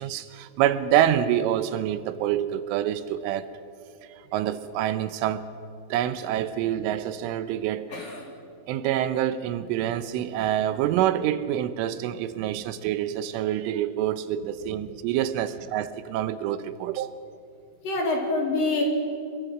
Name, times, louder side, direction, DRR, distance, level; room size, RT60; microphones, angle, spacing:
voice 1, 0.0-3.5 4.0-5.4 5.9-7.9 8.7-17.2, right 11 dB, 85° right, 12 dB, 3.3 m, -26 dB
voice 2, 7.9-8.3 14.7-14.8 17.8-18.8, left 3 dB, 45° left, 0 dB, 5.1 m, -26 dB
28.0 x 23.0 x 6.0 m, 2.5 s
omnidirectional pair, 5.7 m